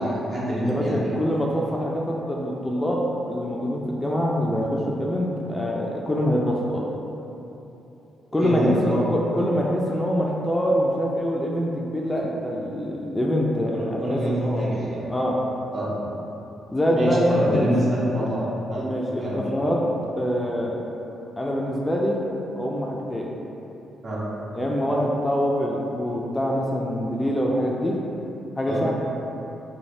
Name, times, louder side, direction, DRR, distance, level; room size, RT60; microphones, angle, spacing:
voice 1, 0.0-1.1 8.3-9.0 13.7-15.1 15.7-16.0 16.9-18.8 19.2-19.4 24.0-24.2 28.7-28.8, equal, 50° right, -7 dB, 0.9 m, -26 dB
voice 2, 0.7-6.8 8.3-14.7 15.1-15.4 16.7-17.7 18.8-19.8 20.2-20.9 21.4-22.2 22.6-23.3 24.5-28.0 28.6-28.9, equal, 15° left, -2 dB, 0.4 m, -24 dB
3.2 x 2.2 x 2.6 m, 3.0 s
hypercardioid pair, 50°, 0 cm